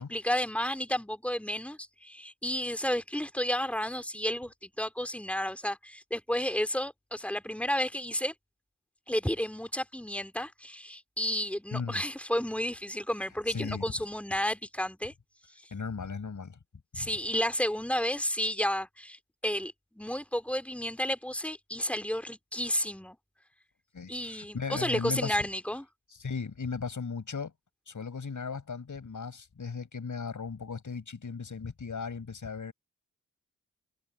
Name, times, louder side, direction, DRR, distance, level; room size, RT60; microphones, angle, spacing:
voice 1, 0.0-8.3 9.1-15.1 15.6-15.7 16.9-23.2 24.1-25.9, equal, 5° left, 2.4 m, -32 dB
voice 2, 11.7-12.0 13.5-13.8 15.7-16.6 16.9-17.1 23.9-25.4 26.2-27.5 27.9-32.7, left 5 dB, 60° left, 5.6 m, -36 dB
cardioid pair, 40°, 34 cm